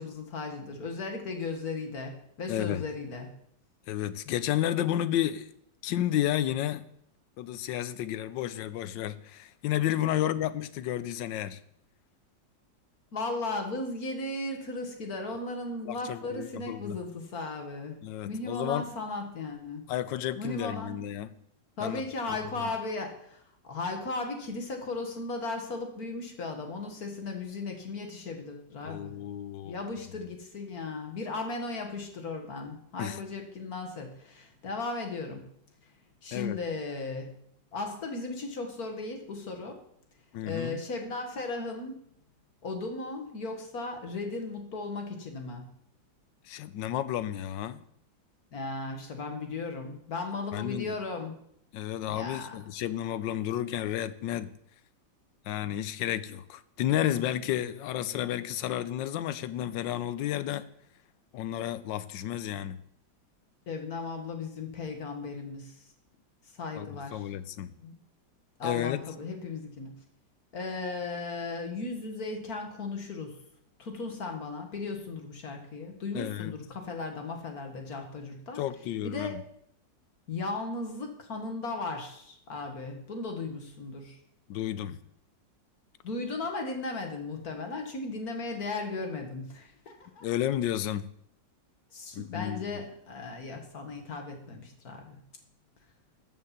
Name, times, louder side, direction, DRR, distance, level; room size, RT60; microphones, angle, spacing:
voice 1, 0.0-3.3 13.1-19.9 20.4-21.0 21.8-29.2 29.6-35.5 36.2-37.4 37.7-39.8 40.4-42.0 42.6-45.6 48.5-51.3 52.1-52.6 63.7-65.8 66.5-67.3 67.8-67.9 68.6-69.9 70.5-73.4 73.8-78.6 79.0-79.4 80.3-84.2 86.0-90.3 91.9-95.2, left 3 dB, 55° left, 2.0 m, -36 dB
voice 2, 2.5-2.8 3.9-5.5 5.8-6.8 7.4-11.6 15.8-17.0 18.0-18.9 19.9-21.3 21.8-22.0 28.8-29.8 33.0-33.2 36.3-36.6 40.3-40.8 46.4-47.8 50.5-50.9 51.7-54.5 55.4-60.7 61.3-62.8 66.7-67.7 68.6-69.1 76.1-76.5 78.6-79.4 84.5-85.0 90.2-91.1 92.1-92.8, left 12 dB, 80° left, 1.3 m, -32 dB
13.0 x 5.6 x 7.4 m
omnidirectional pair, 2.0 m